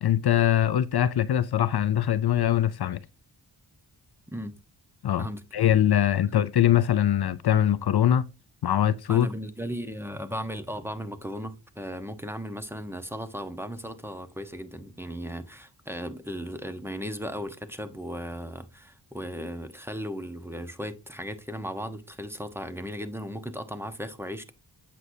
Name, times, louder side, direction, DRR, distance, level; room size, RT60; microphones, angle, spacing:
voice 1, 0.0-3.0 5.0-5.3 5.5-8.3 8.6-9.3, left 11 dB, 60° left, 0.6 m, -22 dB
voice 2, 9.1-24.5, equal, 5° right, 1.1 m, -36 dB
8.0 x 6.2 x 2.7 m
cardioid pair, 50°, 43 cm